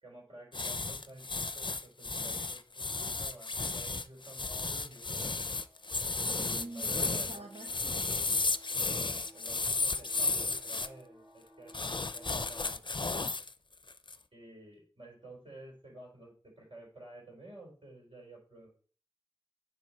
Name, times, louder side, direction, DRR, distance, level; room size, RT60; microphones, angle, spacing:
voice 1, 0.0-5.1 6.3-7.4 9.0-11.7 12.1-12.8 14.3-18.7, right 1 dB, 65° right, -2 dB, 4.2 m, -52 dB
sound 1, 0.5-10.9 11.7-13.5 13.9-14.2, left 3 dB, 55° left, 0.4 m, -33 dB
sound 2, 5.5-12.7, equal, 40° right, 2.0 m, -59 dB
voice 2, 6.4-8.4, right 3 dB, 85° right, 2 dB, 1.0 m, -47 dB
9.6 x 4.4 x 4.4 m, 0.42 s
wide cardioid pair, 40°, 10 cm